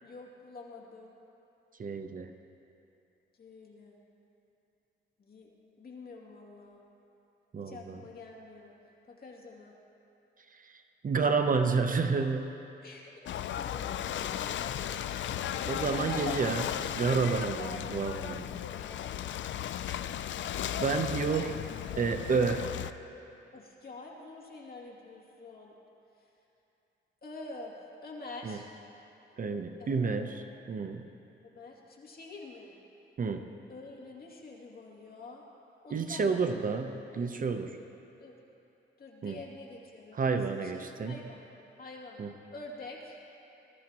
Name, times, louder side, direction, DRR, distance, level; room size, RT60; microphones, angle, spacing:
voice 1, 0.0-1.2 3.4-4.0 5.2-5.5 5.8-6.8 7.6-8.7 9.1-9.8 12.8-13.1 13.6-16.5 17.6-17.8 18.7-19.4 22.7-22.8 23.5-25.7 27.2-27.7 28.0-28.7 29.8-30.5 31.5-32.8 33.7-35.4 35.8-36.8 38.2-38.4 39.0-41.4 41.8-42.2 42.5-43.2, left 3 dB, 50° left, -2 dB, 2.5 m, -47 dB
voice 2, 1.8-2.3 7.5-8.0 10.5-10.7 11.0-12.5 15.7-16.7 16.9-18.4 20.8-21.6 22.0-22.7 28.4-28.6 29.4-31.1 33.2-33.5 35.9-37.8 39.2-39.4 40.1-41.2 42.2-42.3, right 4 dB, 45° right, 7 dB, 0.8 m, -30 dB
Ocean / Boat Water vehicle, 13.3-22.9, left 10 dB, 70° left, 0.4 m, -35 dB
21.0 x 13.0 x 3.0 m, 2.9 s
cardioid pair, 90°, 20 cm